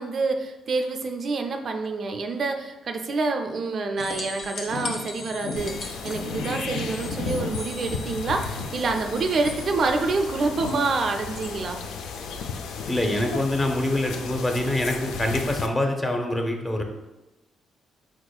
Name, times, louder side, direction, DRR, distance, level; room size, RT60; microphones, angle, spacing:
voice 1, 0.0-11.8, right 3 dB, 50° right, 5 dB, 0.4 m, -27 dB
sound 1, 4.0-9.6 12.6-12.7, left 3 dB, 60° left, 0.9 m, -35 dB
sound 2, 5.6-15.7, left 5 dB, 85° left, 0.4 m, -34 dB
voice 2, 12.9-16.8, left 1 dB, 20° left, 3 dB, 0.7 m, -25 dB
4.8 x 4.1 x 2.3 m, 1.0 s
cardioid pair, 90°, 0 cm